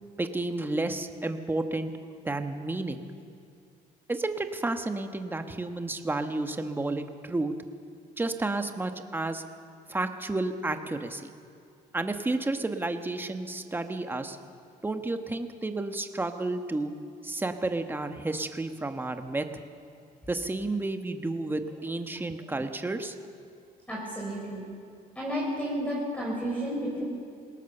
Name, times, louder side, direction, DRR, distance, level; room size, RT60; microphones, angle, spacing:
voice 1, 0.2-1.9 2.2-3.1 4.1-7.5 8.2-9.4 9.9-11.3 11.9-14.4 14.8-16.9 17.2-19.6 20.3-23.1, right 2 dB, 10° right, 7 dB, 1.3 m, -31 dB
voice 2, 23.9-24.6 25.1-27.0, equal, 5° left, -4 dB, 4.9 m, -31 dB
21.0 x 18.5 x 6.8 m, 2.4 s
cardioid pair, 110°, 17 cm